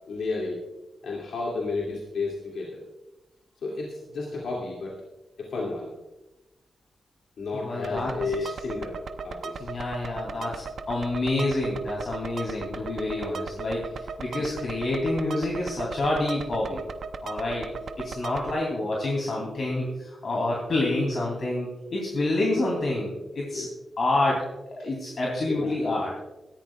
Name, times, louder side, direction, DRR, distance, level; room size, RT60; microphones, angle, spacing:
voice 1, 0.1-0.6 1.0-2.8 3.6-5.0 5.4-5.9 7.4-9.6 23.5-23.7 24.8-24.9 25.5-25.7, left 3 dB, 85° left, -4 dB, 2.4 m, -32 dB
voice 2, 7.5-8.1 8.4-8.5 9.6-16.8 17.2-17.7 18.0-23.7 24.0-24.5 24.8-26.1, left 2 dB, 55° left, -2 dB, 2.9 m, -28 dB
sound 1, 7.8-18.5, right 5 dB, 70° right, 0.7 m, -37 dB
18.5 x 13.5 x 2.4 m, 1.0 s
wide cardioid pair, 110°, 0 cm